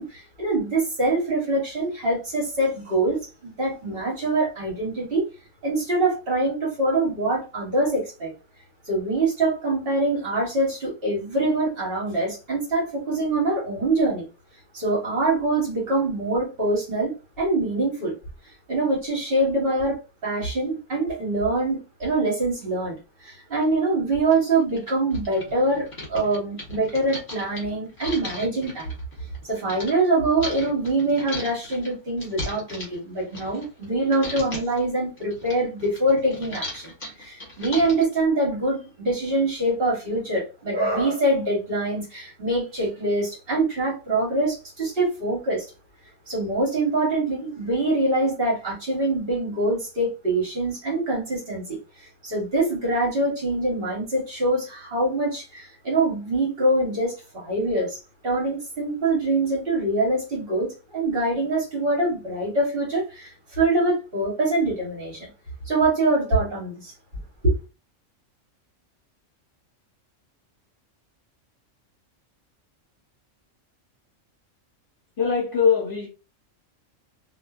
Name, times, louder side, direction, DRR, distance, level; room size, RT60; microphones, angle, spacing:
voice 1, 0.0-5.2 5.6-8.3 8.9-14.3 14.7-18.1 18.7-20.0 20.2-28.9 29.4-36.9 37.2-45.6 46.3-58.0 58.2-65.3 65.7-66.9 67.4-67.5, right 2 dB, 50° right, 1.3 m, -24 dB
sound 1, 23.6-23.7 24.3-24.4 24.7-29.9 30.4-33.9 34.1-34.8 35.2-38.2, left 1 dB, 30° left, 1.1 m, -37 dB
voice 2, 75.2-76.1, left 6 dB, 50° left, 0.8 m, -21 dB
2.5 x 2.3 x 2.3 m
omnidirectional pair, 1.3 m